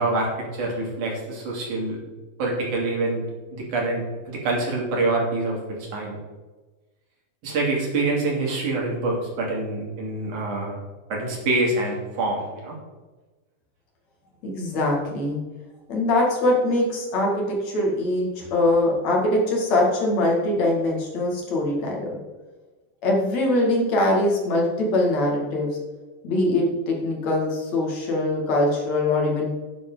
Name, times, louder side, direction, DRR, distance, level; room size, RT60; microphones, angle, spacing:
voice 1, 0.0-2.0 2.4-3.2 3.5-5.6 5.9-6.2 7.4-10.8 11.1-12.8 18.4-18.5, right 2 dB, 75° right, -2 dB, 4.2 m, -26 dB
voice 2, 14.4-15.4 15.9-22.2 23.0-25.7 26.2-29.5, left 1 dB, 60° left, -1 dB, 3.3 m, -22 dB
12.0 x 9.5 x 3.9 m, 1.2 s
omnidirectional pair, 3.6 m